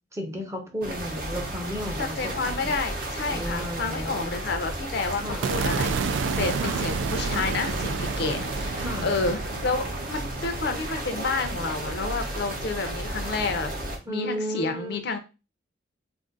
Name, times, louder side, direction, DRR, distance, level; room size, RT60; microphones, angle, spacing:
voice 1, 0.1-2.2 2.6-2.8 3.3-4.3 5.2-5.5 6.6-6.9 8.7-9.1 14.1-15.0, equal, 15° right, 3 dB, 0.7 m, -33 dB
sound 1, 0.8-14.0, right 1 dB, 50° right, 0.8 m, -33 dB
voice 2, 2.0-13.7 14.1-15.2, left 3 dB, 60° left, 7 dB, 0.5 m, -30 dB
sound 2, 5.4-11.7, right 5 dB, 80° right, 0.3 m, -31 dB
2.5 x 2.5 x 3.8 m, 0.30 s
head